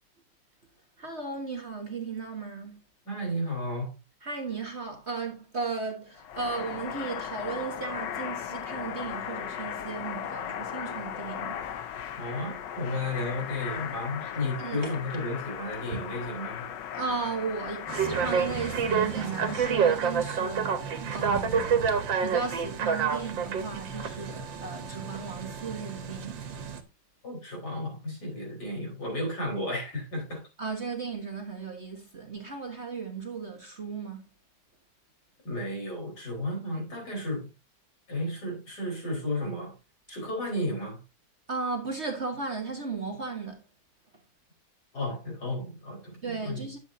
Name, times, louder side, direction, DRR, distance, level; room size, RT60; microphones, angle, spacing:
voice 1, 1.0-2.8 4.2-11.7 14.2-14.3 14.6-14.9 15.9-16.0 16.9-26.5 30.6-34.2 41.5-43.6 46.2-46.8, right 4 dB, 40° right, 1.4 m, -35 dB
voice 2, 3.1-3.9 12.2-16.6 27.2-30.4 35.4-37.5 38.1-39.7 40.1-41.0 44.9-46.6, left 1 dB, 60° left, 4.8 m, -33 dB
sound 1, 6.2-19.8, left 9 dB, 75° left, 1.4 m, -37 dB
sound 2, 17.9-26.8, right 6 dB, 90° right, 1.9 m, -29 dB
10.5 x 8.0 x 2.7 m
omnidirectional pair, 2.0 m